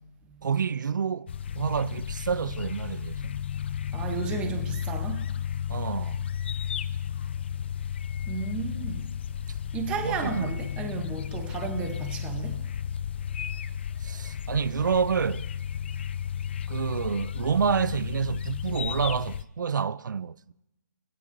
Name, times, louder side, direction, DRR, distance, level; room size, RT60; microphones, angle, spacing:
voice 1, 0.4-1.3 1.6-3.3 5.7-6.3 10.0-10.6 11.4-11.5 14.0-15.5 16.7-20.5, right 6 dB, 85° right, 0.4 m, -28 dB
sound 1, 1.3-19.4, left 8 dB, 35° left, 0.4 m, -33 dB
voice 2, 3.9-5.2 8.3-9.1 9.7-12.6, right 6 dB, 10° right, 0.7 m, -33 dB
21.5 x 9.8 x 2.6 m
hypercardioid pair, 165°, 10 cm